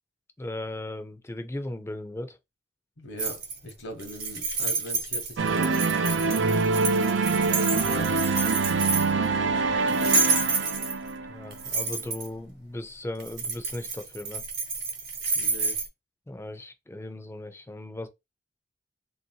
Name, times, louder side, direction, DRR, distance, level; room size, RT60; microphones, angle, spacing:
voice 1, 0.4-2.4 11.3-14.4 16.3-18.1, left 1 dB, 15° left, 0.5 m, -37 dB
voice 2, 3.0-6.0 6.7-8.7 9.1-10.4 15.3-15.8, equal, 70° left, 1.0 m, -42 dB
sound 1, 3.2-3.7 4.0-9.3 9.9-11.1 11.5-12.3 13.2-15.9, right 4 dB, 60° right, 1.0 m, -29 dB
sound 2, 5.4-11.6, right 4 dB, 85° right, 0.5 m, -25 dB
3.0 x 2.7 x 2.8 m
head